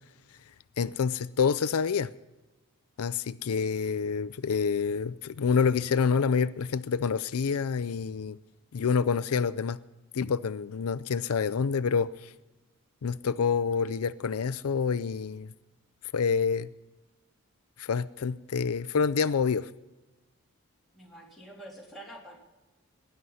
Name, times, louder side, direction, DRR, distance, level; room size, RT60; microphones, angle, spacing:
voice 1, 0.8-2.1 3.0-8.4 8.7-9.8 10.1-12.3 13.0-15.5 16.1-16.7 17.8-19.7, left 6 dB, 85° left, 15 dB, 0.5 m, -27 dB
voice 2, 20.9-22.4, right 1 dB, ahead, -4 dB, 3.4 m, -47 dB
19.5 x 11.0 x 5.5 m, 1.1 s
head